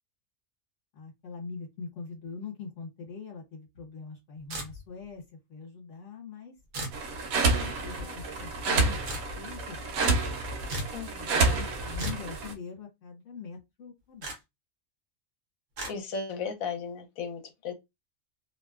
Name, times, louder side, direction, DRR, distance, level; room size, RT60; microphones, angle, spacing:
voice 1, 0.9-5.2 5.5-7.0 7.5-9.0 9.4-10.2 11.3-14.3, left 5 dB, 60° left, 1.3 m, -43 dB
sound 1, 4.5-5.1 6.7-7.0 9.1-9.3 10.7-11.0 12.0-12.3 14.2-14.4 15.8-15.9, right 1 dB, 70° right, 1.1 m, -35 dB
sound 2, 6.9-12.5, right 3 dB, 90° right, 1.1 m, -29 dB
voice 2, 10.9-11.4 15.9-17.7, left 5 dB, 80° left, 1.1 m, -36 dB
2.8 x 2.0 x 2.3 m
omnidirectional pair, 1.5 m